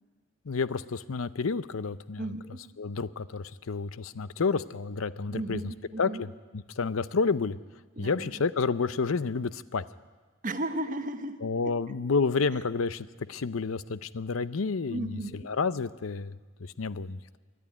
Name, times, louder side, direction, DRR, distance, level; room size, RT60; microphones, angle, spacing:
voice 1, 0.5-2.3 2.8-5.6 6.0-6.3 6.5-7.6 8.0-9.8 11.4-17.4, left 4 dB, 90° left, 16 dB, 0.7 m, -30 dB
voice 2, 2.2-2.6 5.3-6.2 8.0-8.4 10.4-12.0 14.9-15.5, right 1 dB, 40° right, 9 dB, 1.2 m, -35 dB
26.0 x 11.0 x 9.8 m, 1.4 s
head